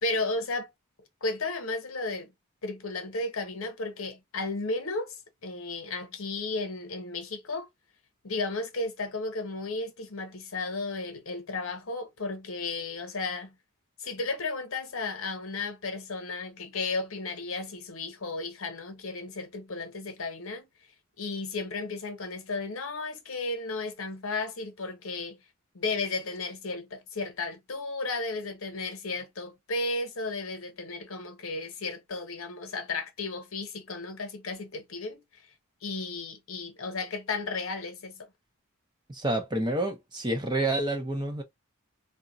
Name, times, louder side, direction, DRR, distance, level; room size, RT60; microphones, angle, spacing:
voice 1, 0.0-0.7 1.2-2.3 2.6-7.7 8.2-13.6 14.0-20.7 21.2-25.4 25.7-35.4 35.8-38.3, left 3 dB, 70° left, 0.9 m, -34 dB
voice 2, 39.1-41.4, right 1 dB, 20° right, 0.6 m, -28 dB
2.4 x 2.1 x 3.8 m
head